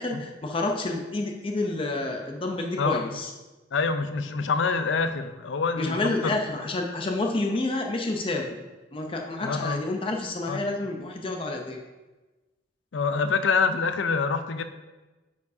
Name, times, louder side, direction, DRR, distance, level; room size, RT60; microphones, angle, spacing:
voice 1, 0.0-3.3 5.8-8.6 8.9-11.8, left 2 dB, 30° left, 2 dB, 0.5 m, -29 dB
voice 2, 2.8-3.1 3.7-6.3 9.4-9.8 10.5-10.8 12.9-14.6, left 4 dB, 75° left, 10 dB, 0.5 m, -26 dB
9.6 x 4.8 x 2.7 m, 1.2 s
head